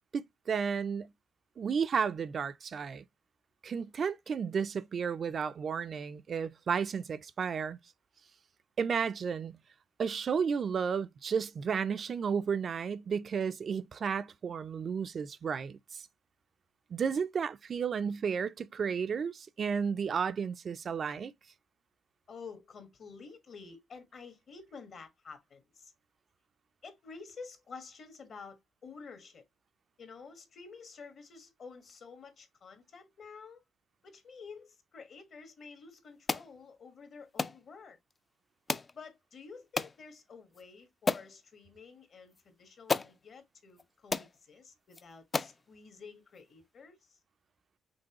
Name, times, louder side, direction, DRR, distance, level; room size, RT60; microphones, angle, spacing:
voice 1, 0.1-1.1 1.6-3.0 3.6-7.8 8.8-9.6 10.0-16.1 16.9-21.3, right 6 dB, 50° right, 0.4 m, -33 dB
voice 2, 22.3-25.9 26.8-29.4 30.0-33.6 34.0-38.0 38.9-47.2, left 5 dB, 55° left, 1.2 m, -50 dB
sound 1, 36.3-36.5 37.4-37.6 38.7-38.9 39.8-40.0 40.5-40.6 41.1-41.3 42.4-42.5 42.9-43.1 43.8-43.9 44.1-44.3 44.9-45.0 45.3-45.6, left 4 dB, 30° left, 0.3 m, -32 dB
5.3 x 3.4 x 2.9 m
cardioid pair, 90°, 0 cm